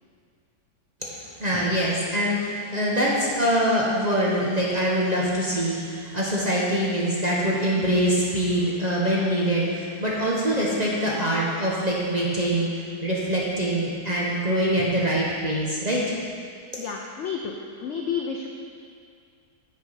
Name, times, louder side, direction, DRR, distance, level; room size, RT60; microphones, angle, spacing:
voice 1, 1.1-16.2, equal, 35° right, -5 dB, 0.7 m, -24 dB
voice 2, 16.8-17.5 17.8-18.5, left 6 dB, 80° left, 1 dB, 0.6 m, -30 dB
7.9 x 4.5 x 5.5 m, 2.3 s
omnidirectional pair, 1.8 m